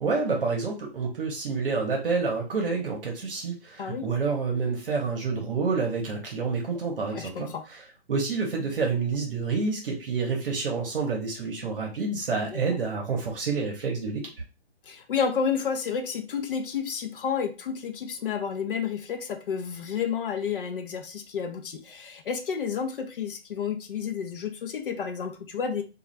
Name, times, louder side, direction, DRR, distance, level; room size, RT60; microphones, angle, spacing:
voice 1, 0.0-7.8 8.1-14.3, right 4 dB, 55° right, 0 dB, 0.9 m, -28 dB
voice 2, 7.1-7.6 12.5-12.6 14.9-25.8, left 6 dB, 55° left, 5 dB, 0.6 m, -30 dB
2.4 x 2.3 x 3.1 m, 0.31 s
hypercardioid pair, 165°, 33 cm